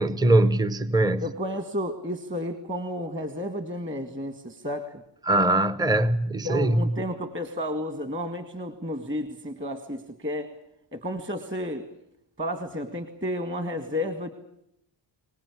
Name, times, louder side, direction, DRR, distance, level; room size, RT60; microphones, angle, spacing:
voice 1, 0.0-1.2 5.3-6.9, right 1 dB, 10° right, 0.9 m, -22 dB
voice 2, 1.2-5.0 6.4-10.5 10.9-11.9 12.4-14.3, left 1 dB, 25° right, 2.0 m, -32 dB
25.5 x 18.5 x 8.4 m
cardioid pair, 95°, 47 cm